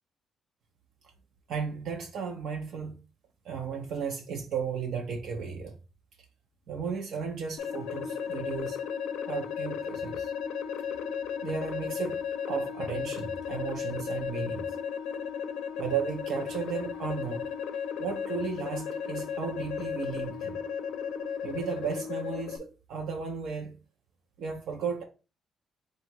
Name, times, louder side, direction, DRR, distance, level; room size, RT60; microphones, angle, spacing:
voice 1, 1.5-3.0 3.4-5.8 6.7-8.8 9.3-10.3 11.4-12.2 12.5-14.7 15.8-17.4 18.0-20.6 21.4-23.8 24.4-25.0, right 6 dB, 75° right, 0.7 m, -34 dB
sound 1, 7.6-22.6, left 7 dB, 90° left, 0.5 m, -35 dB
3.9 x 2.4 x 4.5 m
cardioid pair, 90°, 0 cm